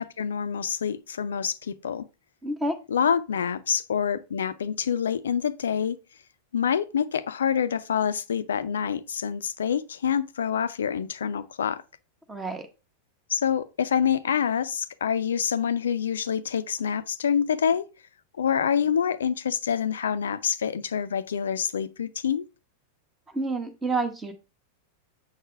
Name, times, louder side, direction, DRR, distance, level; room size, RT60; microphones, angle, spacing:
voice 1, 0.0-2.1 2.9-6.0 6.5-11.8 13.3-17.9 18.4-22.4, left 8 dB, 65° left, 0.5 m, -26 dB
voice 2, 2.4-2.8 12.3-12.7 23.3-24.3, right 2 dB, 15° right, 1.4 m, -28 dB
7.2 x 6.5 x 3.3 m
figure-of-eight pair, 90°, 0 cm